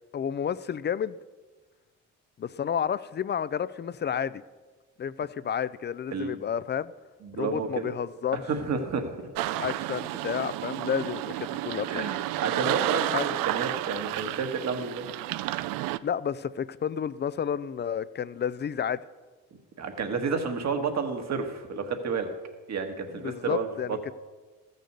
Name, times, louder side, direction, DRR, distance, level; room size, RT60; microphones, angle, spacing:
voice 1, 0.1-1.2 2.4-4.4 5.0-6.9 7.4-8.4 9.5-12.1 13.1-13.2 16.0-19.0 23.1-24.1, left 8 dB, 35° left, 0.4 m, -31 dB
voice 2, 7.2-7.9 8.5-9.3 11.8-15.1 19.8-22.3 22.7-24.0, right 5 dB, 55° right, 1.7 m, -31 dB
sound 1, 9.4-16.0, right 15 dB, 80° right, 0.5 m, -31 dB
14.0 x 6.5 x 6.7 m
cardioid pair, 85°, 33 cm